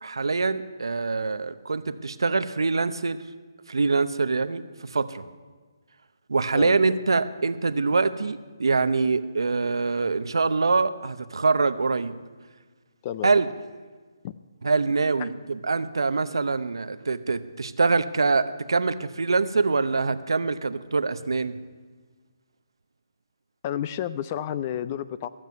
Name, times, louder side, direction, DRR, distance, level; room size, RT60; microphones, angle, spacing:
voice 1, 0.0-3.2 3.7-5.3 6.3-12.1 13.2-13.5 14.6-21.6, right 4 dB, 85° right, 12 dB, 0.7 m, -24 dB
voice 2, 23.6-25.3, left 10 dB, 25° left, 14 dB, 0.4 m, -31 dB
14.0 x 7.6 x 9.4 m, 1.4 s
hypercardioid pair, 165°, 2 cm